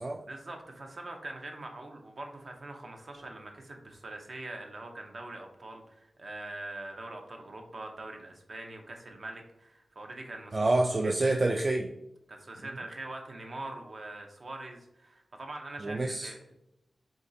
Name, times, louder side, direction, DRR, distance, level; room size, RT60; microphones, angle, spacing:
voice 1, 0.2-10.7 11.0-11.4 12.3-16.6, right 2 dB, 55° right, 2 dB, 0.7 m, -43 dB
voice 2, 10.5-11.9 15.8-16.3, right 2 dB, 35° right, 3 dB, 0.3 m, -27 dB
3.7 x 3.6 x 2.7 m, 0.85 s
wide cardioid pair, 90°, 0 cm